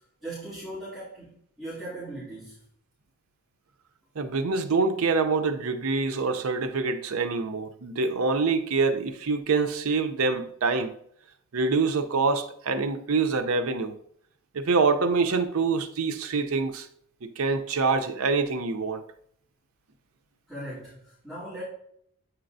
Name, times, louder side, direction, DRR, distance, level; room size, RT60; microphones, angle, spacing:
voice 1, 0.2-1.3 1.6-2.6 20.5-21.6, right 1 dB, ahead, 2.6 m, -38 dB
voice 2, 4.2-11.0 11.5-14.0 14.5-16.9 17.2-19.0, right 4 dB, 80° right, 0.6 m, -25 dB
8.6 x 4.4 x 2.6 m
head